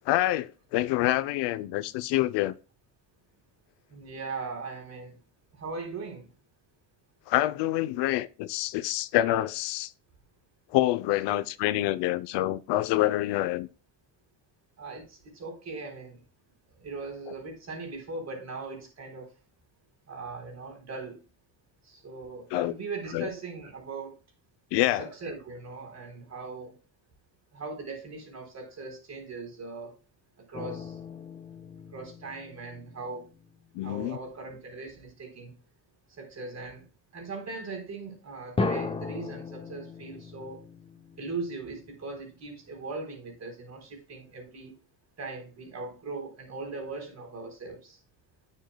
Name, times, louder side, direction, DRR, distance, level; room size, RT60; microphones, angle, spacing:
voice 1, 0.1-2.5 7.3-9.9 10.7-13.7 22.5-22.7 23.1-23.3 24.7-25.1 33.7-34.2, left 15 dB, 75° left, 0.7 m, -26 dB
voice 2, 3.9-5.2 5.5-6.3 11.3-11.4 14.8-16.2 16.7-19.3 20.1-21.2 21.8-24.2 25.0-26.8 27.5-29.9 30.5-31.0 31.9-33.3 33.8-35.5 36.1-36.9 37.1-40.6 41.2-44.8 45.2-48.0, right 3 dB, 40° right, 3.7 m, -39 dB
sound 1, 30.5-33.7 38.6-42.2, left 3 dB, 15° left, 0.7 m, -36 dB
9.1 x 7.5 x 2.2 m
cardioid pair, 120°, 42 cm